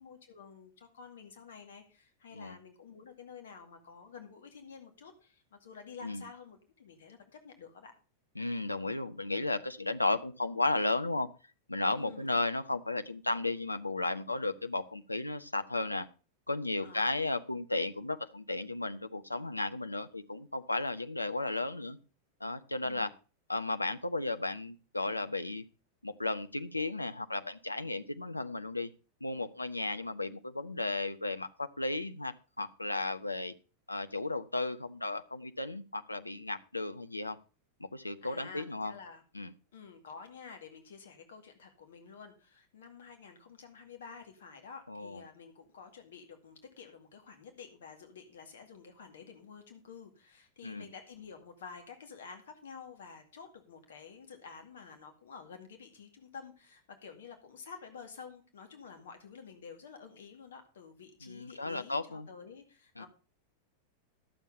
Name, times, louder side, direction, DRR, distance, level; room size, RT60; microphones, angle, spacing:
voice 1, 0.0-7.9 11.9-12.3 16.8-17.1 22.8-23.1 38.2-39.2 39.7-63.1, left 6 dB, 60° left, 6 dB, 2.2 m, -50 dB
voice 2, 8.4-11.3 11.7-16.1 16.5-22.0 22.4-23.1 23.5-25.6 26.0-28.9 29.2-33.5 33.9-37.4 37.8-38.9 39.3-39.5 44.9-45.2 50.6-50.9 61.2-62.3 63.0-63.1, left 2 dB, 85° left, 10 dB, 0.8 m, -34 dB
12.0 x 7.4 x 5.4 m, 0.34 s
figure-of-eight pair, 90°, 0 cm